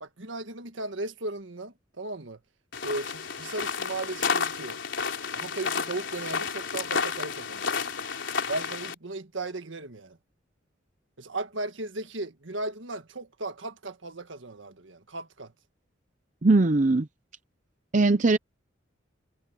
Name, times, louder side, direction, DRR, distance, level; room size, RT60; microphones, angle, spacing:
voice 1, 0.0-2.4 2.8-4.8 5.3-7.7 8.5-10.2 11.2-15.5, right 2 dB, 75° right, 1.7 m, -36 dB
sound 1, 2.7-8.9, left 5 dB, 65° left, 4.0 m, -31 dB
voice 2, 16.4-17.1 17.9-18.4, right 3 dB, 40° right, 0.6 m, -20 dB
head